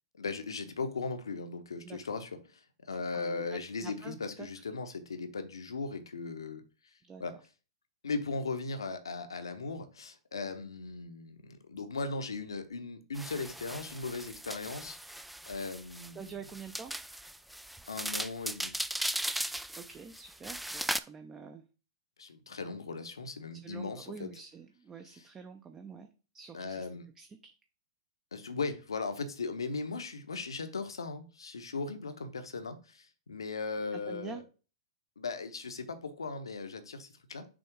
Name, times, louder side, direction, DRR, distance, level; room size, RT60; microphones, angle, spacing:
voice 1, 0.2-6.6 7.2-7.3 8.0-15.2 15.5-16.3 17.9-18.8 22.2-24.3 25.1-25.2 26.5-27.1 28.3-34.4 35.2-37.4, left 4 dB, 80° left, 9 dB, 1.0 m, -38 dB
voice 2, 3.1-4.6 7.1-7.2 16.1-16.9 19.8-21.6 23.5-26.9 27.2-27.5 33.9-34.4, right 5 dB, 20° right, 6 dB, 0.7 m, -47 dB
sound 1, 13.1-21.0, right 1 dB, ahead, 0.3 m, -38 dB
6.3 x 3.5 x 4.7 m, 0.35 s
figure-of-eight pair, 105°, 2 cm